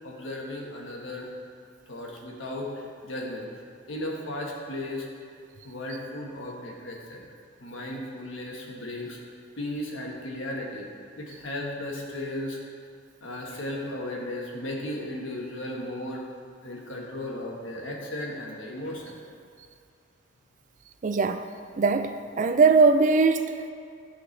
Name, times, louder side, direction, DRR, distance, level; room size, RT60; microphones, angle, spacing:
voice 1, 0.0-1.3 1.9-3.5 3.9-5.1 5.6-7.2 7.6-9.2 9.6-10.9 11.2-12.6 13.2-16.2 16.6-19.1, left 1 dB, 85° left, -1 dB, 1.4 m, -35 dB
voice 2, 21.0-21.4 21.8-23.7, right 4 dB, 40° right, 8 dB, 0.4 m, -21 dB
12.0 x 5.7 x 3.3 m, 2.4 s
head